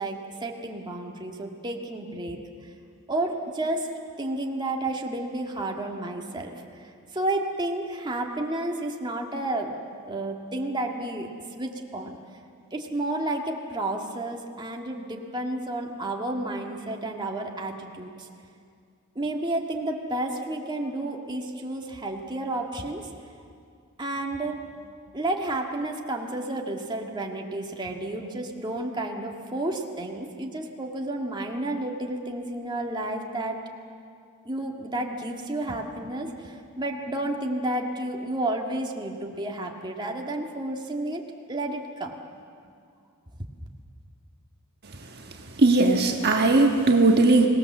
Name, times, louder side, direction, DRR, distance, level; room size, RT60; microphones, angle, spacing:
voice 1, 0.0-2.4 3.1-3.9 4.2-9.8 10.0-11.3 11.6-12.2 12.7-18.3 19.2-23.1 24.0-24.7 25.1-33.6 34.5-42.2, right 1 dB, 20° right, 1 dB, 1.8 m, -31 dB
voice 2, 45.6-47.5, right 2 dB, 50° right, 2 dB, 1.5 m, -18 dB
25.5 x 18.5 x 7.4 m, 2.3 s
head